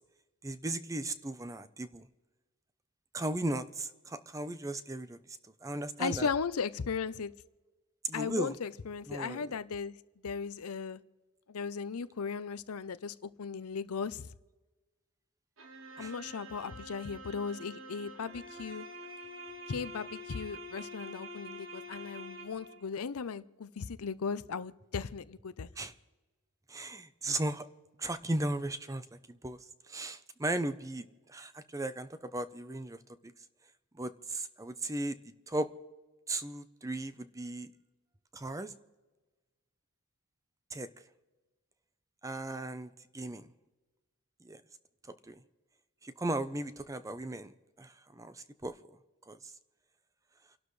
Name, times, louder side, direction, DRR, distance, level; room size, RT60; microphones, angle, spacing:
voice 1, 0.4-2.1 3.1-5.2 5.6-6.3 8.1-8.5 9.1-9.5 16.0-16.1 25.8-25.9 26.7-27.6 28.0-29.6 29.9-31.0 31.3-33.0 33.2-33.3 34.0-35.2 35.5-35.7 36.3-37.7 38.3-38.7 40.7-40.9 42.2-43.5 44.4-44.6 45.3-45.4 46.0-48.7 49.3-49.5, right 2 dB, 15° right, 12 dB, 0.6 m, -36 dB
voice 2, 6.0-7.3 8.1-10.0 10.2-11.0 11.5-14.3 16.0-18.9 19.7-25.7, left 5 dB, 80° left, 15 dB, 0.6 m, -37 dB
sound 1, 15.6-22.8, equal, 60° right, 1.6 m, -46 dB
29.5 x 12.0 x 3.2 m, 1.2 s
head